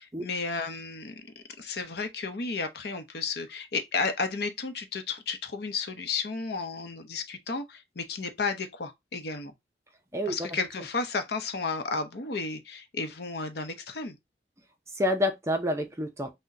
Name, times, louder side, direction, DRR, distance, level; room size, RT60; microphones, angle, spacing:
voice 1, 0.2-9.5 10.3-14.2, left 4 dB, 60° left, 0.7 m, -33 dB
voice 2, 10.1-10.6 14.9-16.3, left 1 dB, 15° right, 0.5 m, -28 dB
6.0 x 2.1 x 2.6 m
head